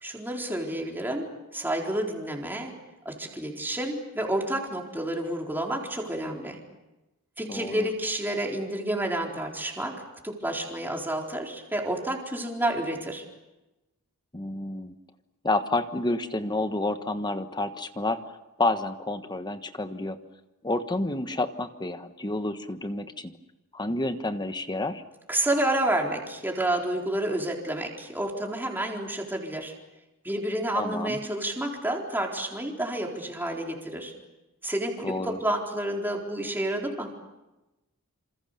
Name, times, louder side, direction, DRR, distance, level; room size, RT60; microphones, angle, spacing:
voice 1, 0.0-2.7 3.0-6.6 7.4-13.2 25.3-29.7 30.2-34.1 34.6-37.1, right 1 dB, 10° right, 0 dB, 4.1 m, -30 dB
voice 2, 7.5-7.9 14.3-14.9 15.4-18.2 18.6-20.2 20.6-23.3 23.7-25.0 30.7-31.2 35.0-35.4, left 2 dB, 20° left, 9 dB, 1.3 m, -29 dB
27.5 x 27.0 x 6.8 m, 1.0 s
head